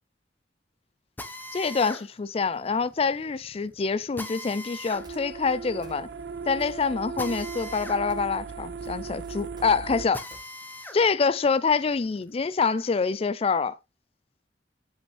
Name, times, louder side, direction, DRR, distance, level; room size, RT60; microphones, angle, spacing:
Drill, 1.2-11.0 11.5-13.1, left 1 dB, 10° left, 0.8 m, -42 dB
voice 1, 1.5-6.1 6.5-10.3 10.9-13.8, left 5 dB, 35° left, 0.4 m, -26 dB
sound 1, 4.9-10.1, right 5 dB, 70° right, 0.5 m, -37 dB
sound 2, 5.0-5.5 5.8-6.3 6.6-7.1 7.3-8.4 8.6-10.4, right 1 dB, 25° right, 1.6 m, -52 dB
8.2 x 5.3 x 3.2 m
head